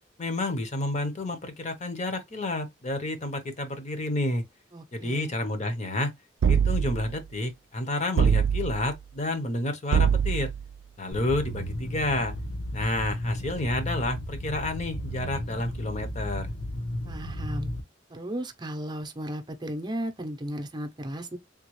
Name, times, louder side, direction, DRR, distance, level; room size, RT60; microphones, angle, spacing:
voice 1, 0.2-4.4 4.9-6.1 6.5-10.5 11.0-12.3 12.7-16.5, left 2 dB, 40° left, 0.8 m, -30 dB
voice 2, 4.7-5.4 17.1-17.7 18.1-21.4, right 1 dB, 25° right, 0.6 m, -35 dB
sound 1, 6.4-7.2 8.2-8.9 9.9-10.7, right 7 dB, 90° right, 0.3 m, -23 dB
sound 2, 11.1-17.8, equal, 70° left, 1.0 m, -34 dB
3.6 x 2.4 x 3.0 m
head